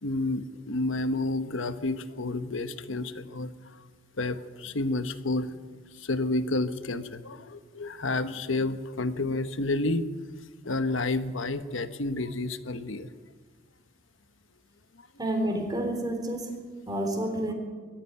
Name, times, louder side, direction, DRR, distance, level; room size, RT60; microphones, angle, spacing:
voice 1, 0.0-3.8 4.2-5.6 5.9-10.1 10.6-13.1 14.9-15.1, left 2 dB, 70° left, 11 dB, 1.2 m, -30 dB
voice 2, 15.2-16.5 16.9-17.5, right 1 dB, 20° right, 4 dB, 3.7 m, -29 dB
21.5 x 14.5 x 9.6 m, 1.5 s
head